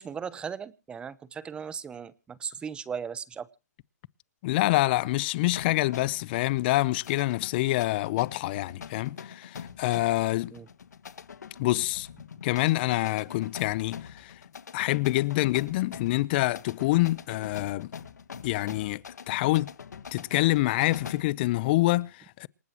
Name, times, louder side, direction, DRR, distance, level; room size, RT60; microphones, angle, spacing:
voice 1, 0.0-3.5 10.5-10.7, right 6 dB, 10° right, 0.9 m, -37 dB
voice 2, 4.4-10.5 11.6-12.1 12.4-14.3 14.7-17.9 18.4-19.0 19.3-19.7 20.1-22.5, left 18 dB, 35° left, 0.6 m, -26 dB
sound 1, 5.6-21.4, left 7 dB, 80° left, 2.0 m, -44 dB
27.5 x 10.5 x 3.0 m
hypercardioid pair, 150°, 9 cm